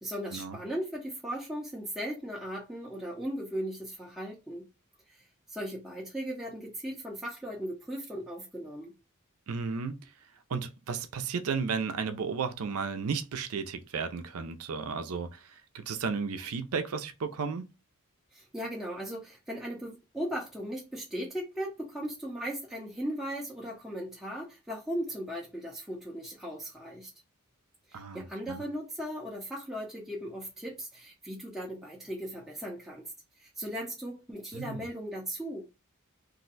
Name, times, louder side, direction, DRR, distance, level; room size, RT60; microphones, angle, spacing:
voice 1, 0.0-4.7 5.1-5.2 5.5-8.9 18.3-27.1 27.9-33.1 33.4-35.6, equal, ahead, 0.5 m, -37 dB
voice 2, 9.5-10.1 10.5-17.7 27.9-28.6 34.5-34.9, right 5 dB, 80° right, 0.5 m, -34 dB
2.6 x 2.1 x 3.9 m
head